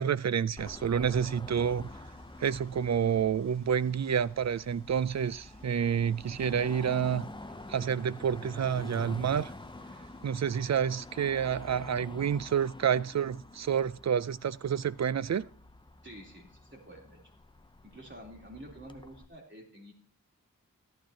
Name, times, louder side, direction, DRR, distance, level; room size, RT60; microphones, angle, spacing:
voice 1, 0.0-1.9 2.4-7.3 7.7-9.5 10.2-15.5, right 8 dB, 50° right, 0.4 m, -29 dB
Car passing by / Traffic noise roadway noise / Engine, 0.6-19.3, left 2 dB, 15° left, 0.6 m, -48 dB
sound 1, 1.5-11.7, right 1 dB, 75° right, 4.6 m, -62 dB
voice 2, 16.0-17.2 17.8-19.9, right 1 dB, 35° right, 3.4 m, -49 dB
14.0 x 12.0 x 2.9 m
wide cardioid pair, 60°, 35 cm